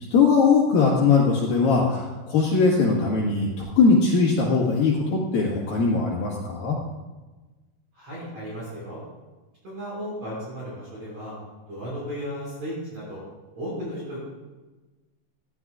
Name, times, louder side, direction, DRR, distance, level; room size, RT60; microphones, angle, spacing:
voice 1, 0.1-6.7, left 4 dB, 60° left, -4 dB, 3.2 m, -20 dB
voice 2, 7.9-9.0 9.6-11.4 11.7-13.2 13.5-14.2, equal, 40° right, -8 dB, 6.5 m, -34 dB
19.0 x 14.5 x 2.5 m, 1.2 s
omnidirectional pair, 5.0 m